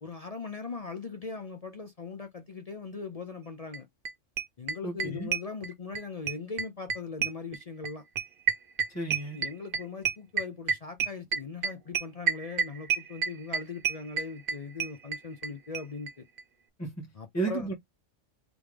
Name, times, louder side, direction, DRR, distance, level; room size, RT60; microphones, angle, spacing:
voice 1, 0.0-3.9 4.6-8.0 9.3-16.3 17.2-17.7, left 4 dB, 45° left, 0.5 m, -40 dB
sound 1, 3.7-3.8 4.1-4.2 4.4-6.0 6.3-15.5 15.7-15.8 16.1-16.2 16.4-16.5, right 6 dB, 55° right, 0.8 m, -29 dB
voice 2, 4.8-5.3 8.9-9.4 16.8-17.7, right 3 dB, 10° left, 1.7 m, -33 dB
3.7 x 3.5 x 3.2 m
omnidirectional pair, 1.3 m